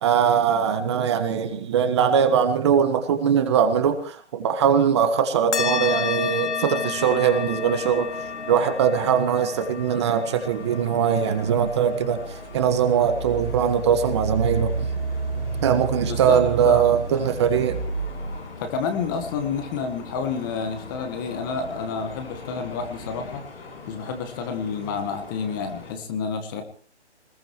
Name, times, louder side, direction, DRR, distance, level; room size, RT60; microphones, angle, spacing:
voice 1, 0.0-8.2 8.5-14.9 15.6-17.8, right 7 dB, 25° right, 7 dB, 1.5 m, -21 dB
sound 1, 5.5-14.4, left 5 dB, 80° left, 1.5 m, -32 dB
sound 2, 6.8-25.9, left 3 dB, 60° left, 7.1 m, -41 dB
Engine, 12.4-18.3, right 4 dB, 85° right, 4.8 m, -30 dB
voice 2, 16.0-17.0 18.6-23.4 23.9-26.6, left 5 dB, 20° left, 7 dB, 1.5 m, -29 dB
23.0 x 20.5 x 3.1 m, 0.42 s
hypercardioid pair, 160°, 34 cm